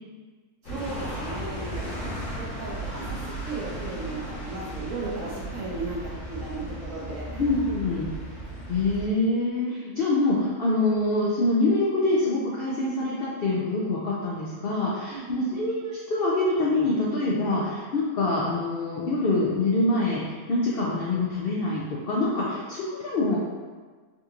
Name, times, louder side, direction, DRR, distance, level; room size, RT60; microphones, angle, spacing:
sound 1, 0.6-9.1, right 1 dB, 60° left, 1.3 m, -35 dB
voice 1, 0.6-1.8 2.4-3.2 3.4-7.4 15.1-15.6, right 2 dB, 65° right, -5 dB, 1.1 m, -35 dB
voice 2, 7.4-8.1 8.7-23.4, left 2 dB, 85° left, -5 dB, 0.5 m, -25 dB
3.8 x 2.8 x 2.4 m, 1.4 s
omnidirectional pair, 1.6 m